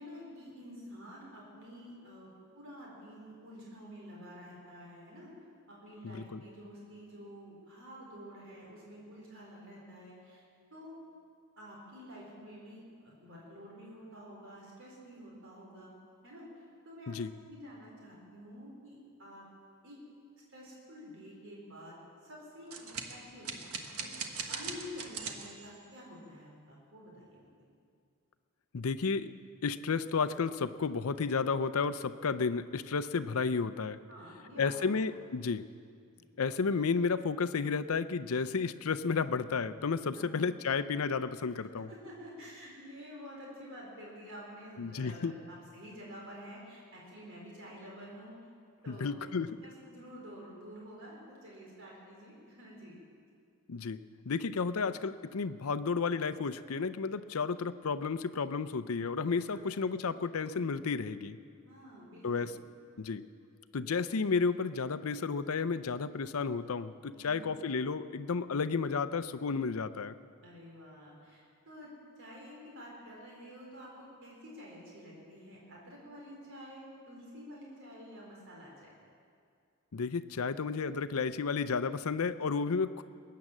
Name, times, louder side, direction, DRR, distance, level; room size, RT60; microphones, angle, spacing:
voice 1, 0.0-5.3 5.7-10.4 10.7-10.9 11.6-15.9 16.2-17.2 17.5-19.4 19.8-20.0 20.5-22.0 22.2-23.5 23.9-24.1 24.5-27.5 34.1-35.0 36.1-36.3 40.1-40.4 41.9-48.3 48.8-49.3 49.6-53.0 59.5-59.6 61.6-62.5 67.1-67.5 70.4-78.9, equal, 60° right, -3 dB, 4.2 m, -49 dB
voice 2, 6.0-6.4 17.1-17.3 28.7-29.3 29.6-34.0 34.6-35.7 36.4-41.9 44.8-45.3 48.9-49.6 53.7-54.0 54.3-61.4 62.2-62.5 63.0-63.2 63.7-70.1 79.9-83.0, left 5 dB, 70° left, 12 dB, 0.6 m, -32 dB
sound 1, 22.7-25.9, right 5 dB, 80° right, 1.4 m, -40 dB
20.5 x 9.4 x 7.4 m, 2.3 s
head